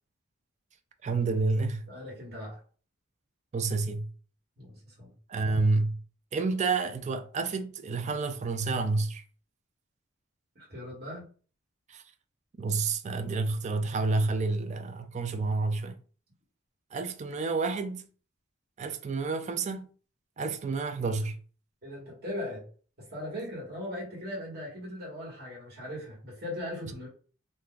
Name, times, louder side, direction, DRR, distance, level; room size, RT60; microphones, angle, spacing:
voice 1, 1.0-1.8 3.5-4.1 5.3-6.0 6.3-9.2 11.9-12.0 12.6-16.0 16.9-18.1 18.8-19.9 20.4-21.4, right 3 dB, 35° right, 0.3 m, -29 dB
voice 2, 1.9-2.6 4.6-5.1 10.5-11.2 21.8-22.7 23.0-27.1, left 1 dB, 50° right, 1.5 m, -39 dB
2.6 x 2.3 x 3.6 m
head